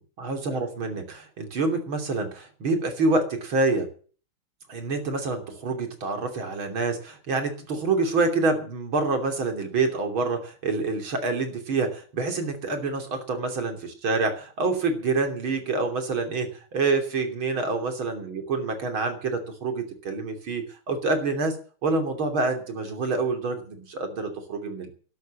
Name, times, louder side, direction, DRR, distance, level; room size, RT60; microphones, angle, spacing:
voice 1, 0.0-3.9 4.7-21.6 21.8-24.9, right 3 dB, 65° right, 5 dB, 3.8 m, -27 dB
12.5 x 11.0 x 7.3 m, 0.41 s
omnidirectional pair, 2.4 m